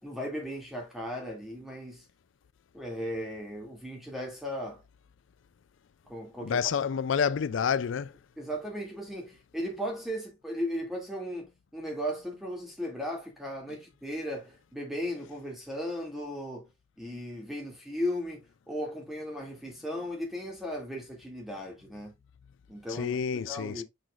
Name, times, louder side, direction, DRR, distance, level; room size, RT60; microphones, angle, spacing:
voice 1, 0.0-2.0 2.7-4.8 6.1-6.6 8.4-16.7 17.0-22.1 22.7-23.8, equal, ahead, 2.3 m, -36 dB
voice 2, 6.4-8.1 22.9-23.8, left 7 dB, 70° left, 0.4 m, -29 dB
6.3 x 6.3 x 2.4 m
head